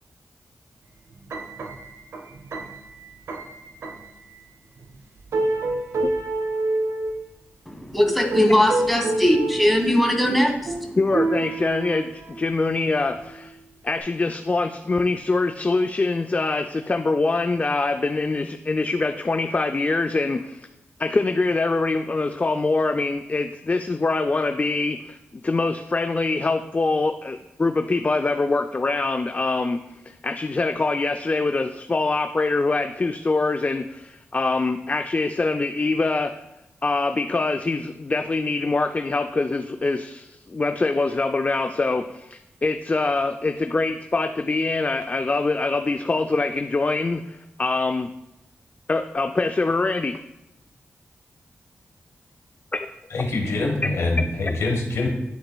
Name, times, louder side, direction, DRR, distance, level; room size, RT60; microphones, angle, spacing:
sound 1, 1.1-4.2 4.8-4.9 5.3-7.2 8.1-9.8 10.2-12.6 13.0-13.4 14.0-14.1, right 2 dB, 80° right, 0.7 m, -28 dB
voice 1, 7.7-11.0, left 1 dB, ahead, 1 dB, 1.4 m, -20 dB
voice 2, 11.0-13.6 13.8-20.7 21.0-25.2 25.4-29.8 30.2-36.3 36.8-48.1 48.9-50.2, left 3 dB, 35° left, 7 dB, 0.3 m, -24 dB
voice 3, 53.1-55.1, left 2 dB, 85° left, 1 dB, 1.1 m, -24 dB
10.5 x 3.9 x 2.2 m, 0.92 s
cardioid pair, 55°, 5 cm